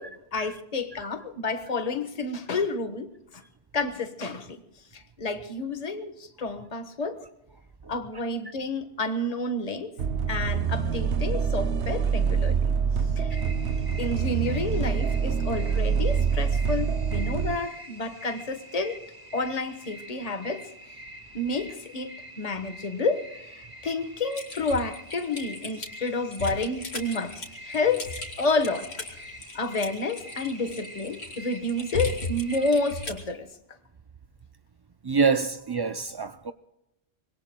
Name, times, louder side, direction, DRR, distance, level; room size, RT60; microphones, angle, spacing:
voice 1, 0.0-3.1 3.3-3.4 3.7-4.6 4.9-7.2 7.9-9.9 10.3-12.7 13.2-13.4 14.0-19.0 19.3-21.0 21.3-33.5, left 2 dB, 35° left, 1.4 m, -30 dB
sound 1, 10.0-17.6, right 6 dB, 80° right, 1.1 m, -26 dB
sound 2, 13.3-33.0, equal, 20° right, 1.4 m, -46 dB
Typing, 24.3-33.3, left 2 dB, 65° left, 3.1 m, -37 dB
voice 2, 35.0-36.5, right 5 dB, 40° right, 0.3 m, -25 dB
25.0 x 21.5 x 2.2 m
omnidirectional pair, 1.1 m